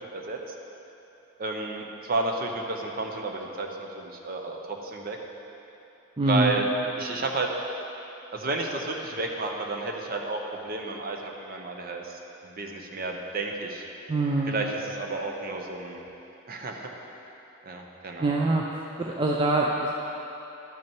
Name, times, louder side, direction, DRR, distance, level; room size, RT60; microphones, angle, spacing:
voice 1, 1.4-5.2 6.2-6.7 7.0-7.5 8.3-13.8 14.5-16.0 16.5-16.9 17.7-18.5, right 3 dB, 45° right, 2 dB, 0.8 m, -32 dB
voice 2, 6.2-6.6 14.1-14.7 18.2-18.6 19.0-19.9, right 2 dB, 20° right, -2 dB, 0.4 m, -24 dB
11.5 x 5.9 x 4.5 m, 3.0 s
head